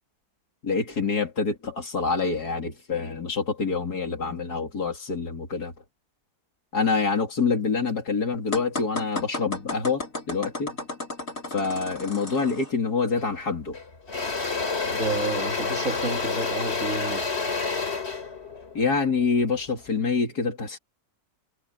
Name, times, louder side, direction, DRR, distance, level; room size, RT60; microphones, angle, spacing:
voice 1, 0.6-5.7 6.7-10.7 11.5-13.8 18.7-20.8, left 4 dB, 85° left, 3.5 m, -26 dB
sound 1, 8.5-12.7, left 2 dB, 60° left, 5.2 m, -34 dB
Engine / Drill, 13.2-13.4 13.7-19.9, left 4 dB, 40° left, 3.4 m, -29 dB
voice 2, 14.8-17.3, right 3 dB, 55° right, 2.5 m, -31 dB
omnidirectional pair, 1.6 m